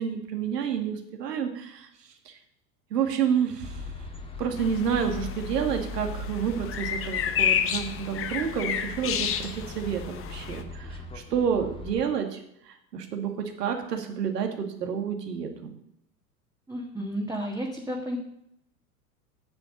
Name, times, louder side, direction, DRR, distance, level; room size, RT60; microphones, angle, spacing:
voice 1, 0.0-1.9 2.3-2.4 2.9-3.9 4.4-12.4 12.7-15.7, right 7 dB, 70° right, 5 dB, 2.1 m, -29 dB
sound 1, 3.6-12.0, left 2 dB, 10° left, 1.6 m, -39 dB
sound 2, 4.6-10.6, left 9 dB, 25° left, 1.0 m, -31 dB
voice 2, 16.7-18.2, equal, 5° right, -1 dB, 1.7 m, -32 dB
9.6 x 7.7 x 6.4 m, 0.74 s
figure-of-eight pair, 90°, 50 cm